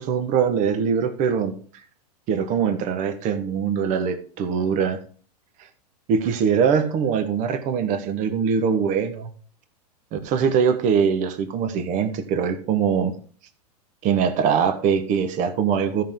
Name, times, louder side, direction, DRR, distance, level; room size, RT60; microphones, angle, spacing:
voice 1, 0.0-1.5 2.3-5.0 6.1-9.3 10.1-13.1 14.0-16.0, right 7 dB, 40° right, 9 dB, 1.2 m, -22 dB
13.5 x 5.8 x 3.7 m, 0.42 s
hypercardioid pair, 105°, 21 cm